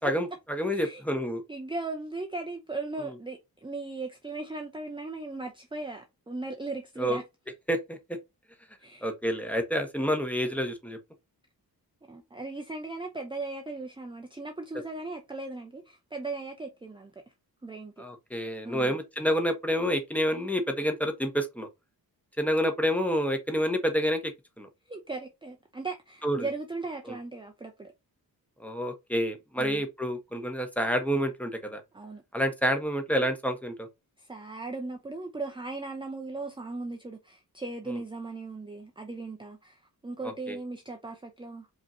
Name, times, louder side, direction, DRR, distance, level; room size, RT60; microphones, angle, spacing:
voice 1, 0.0-1.4 7.0-7.2 7.7-8.0 9.0-11.0 18.0-21.7 22.4-24.3 24.6-24.7 26.2-26.4 27.1-27.2 28.6-31.8 32.3-33.9 37.9-38.0 40.2-40.6, equal, 5° left, 0.9 m, -28 dB
voice 2, 0.7-1.0 1.5-7.2 8.8-9.1 12.1-17.1 17.6-18.0 18.6-19.0 24.9-27.9 29.6-29.8 31.9-32.2 34.2-41.7, right 3 dB, 15° right, 0.6 m, -38 dB
5.1 x 3.1 x 2.7 m
wide cardioid pair, 135°, 38 cm